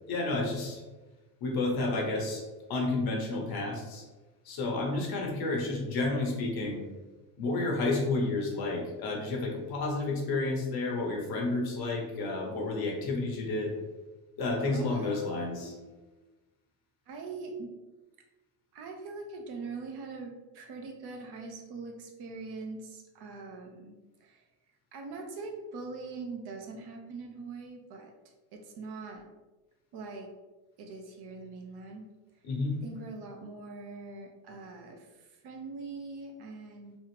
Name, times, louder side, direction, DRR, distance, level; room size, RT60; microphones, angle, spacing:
voice 1, 0.1-0.8 1.4-2.4 2.7-4.0 4.4-6.8 7.4-13.7 14.4-15.7 32.4-32.8, left 2 dB, 45° left, 0 dB, 1.1 m, -31 dB
voice 2, 14.7-15.9 17.1-17.7 18.7-24.5 24.9-29.2 29.9-30.3 30.8-32.0 32.8-37.0, right 3 dB, 50° right, 3 dB, 0.8 m, -42 dB
3.2 x 2.4 x 3.2 m, 1.2 s
supercardioid pair, 80°, 50 cm